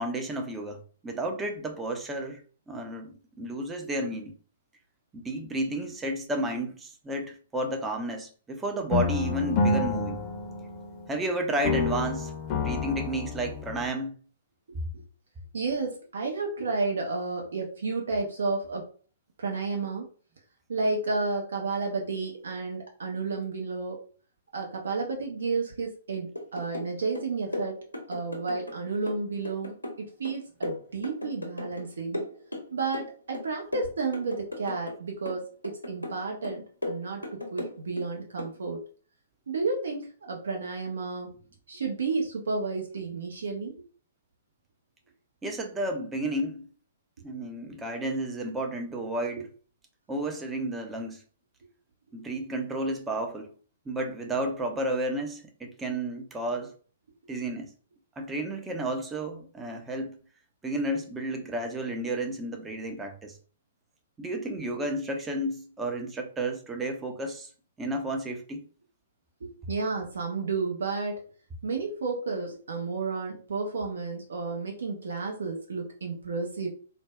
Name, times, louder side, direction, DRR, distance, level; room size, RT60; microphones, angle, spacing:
voice 1, 0.0-2.4 2.7-4.3 5.1-10.2 11.1-14.2 45.4-46.7 47.2-49.5 50.1-51.2 52.1-53.5 53.9-56.7 57.3-57.7 58.2-60.2 60.6-63.4 64.2-67.5 67.8-68.7, right 1 dB, 10° right, 0.6 m, -32 dB
sound 1, 8.9-11.3 11.6-13.9, left 4 dB, 30° left, 0.6 m, -29 dB
voice 2, 15.5-18.9 19.4-20.1 20.7-24.0 24.5-27.8 28.1-32.2 32.7-38.9 39.5-41.3 41.7-43.8 69.4-71.3 71.6-76.7, right 4 dB, 60° right, 0.6 m, -32 dB
sound 2, 26.4-26.9 27.2-28.8 29.1-31.9 32.1-33.1 33.3-35.0 35.3-36.2 36.4-38.1 38.4-38.6, left 1 dB, 80° left, 0.8 m, -36 dB
4.0 x 2.1 x 2.3 m
figure-of-eight pair, 115°, 0 cm